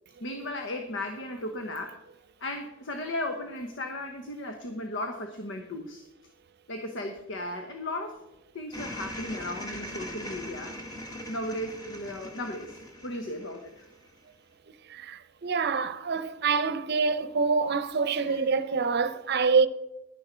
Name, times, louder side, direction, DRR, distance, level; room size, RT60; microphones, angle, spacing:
voice 1, 0.2-2.0 2.4-6.0 6.7-8.2 8.5-10.8 11.3-13.9 18.2-18.4, left 1 dB, 65° left, 1.1 m, -36 dB
sound 1, 8.7-14.1, left 1 dB, 20° left, 1.8 m, -41 dB
voice 2, 14.9-19.7, right 5 dB, 55° right, 0.7 m, -26 dB
11.5 x 9.9 x 4.5 m
head